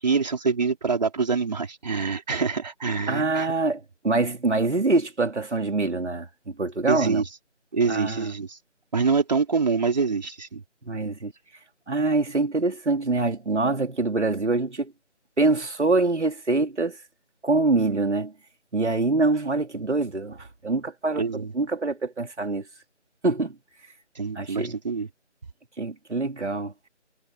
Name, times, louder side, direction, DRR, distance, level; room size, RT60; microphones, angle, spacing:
voice 1, 0.0-3.5 6.9-7.4 7.7-8.6 8.9-10.6 21.2-21.5 24.1-25.1, right 5 dB, 35° right, 4.0 m, -25 dB
voice 2, 3.1-7.2 7.9-8.3 10.8-11.3 11.9-14.9 15.4-17.0 17.4-18.3 18.7-22.6 23.2-23.5 24.3-24.7 25.8-26.7, right 3 dB, 70° right, 3.3 m, -25 dB
figure-of-eight pair, 170°, 36 cm